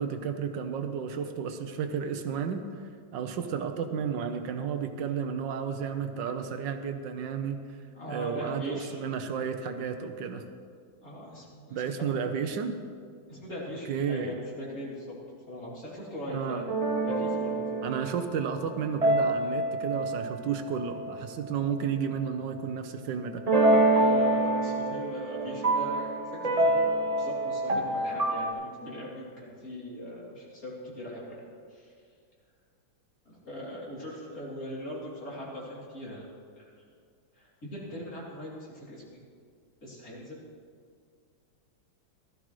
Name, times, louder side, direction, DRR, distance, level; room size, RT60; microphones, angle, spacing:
voice 1, 0.0-2.6 3.1-7.6 8.1-10.4 11.7-12.7 13.9-14.3 16.3-16.6 17.8-23.4, right 7 dB, 70° right, 7 dB, 1.4 m, -32 dB
voice 2, 7.9-9.1 11.0-11.8 13.3-15.2 15.5-16.6 17.0-17.9 24.0-26.8 27.1-31.4 31.7-31.9 33.3-36.3 36.6-36.8 37.4-39.2 39.8-40.4, equal, 45° left, -6 dB, 3.5 m, -40 dB
pianomotive (piano only), 16.7-21.2 23.5-28.5, right 2 dB, 45° right, 0.4 m, -27 dB
16.5 x 13.0 x 3.2 m, 2.1 s
omnidirectional pair, 2.1 m